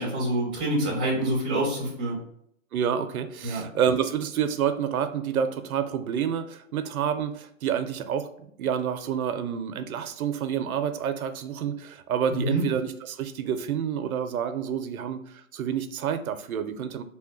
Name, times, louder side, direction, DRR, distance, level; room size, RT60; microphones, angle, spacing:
voice 1, 0.0-2.2 3.4-3.6 12.3-12.6, right 1 dB, 10° right, -5 dB, 0.3 m, -26 dB
voice 2, 2.7-8.3 8.6-17.0, right 8 dB, 90° right, 10 dB, 0.5 m, -28 dB
2.7 x 2.2 x 3.8 m, 0.71 s
hypercardioid pair, 145°, 42 cm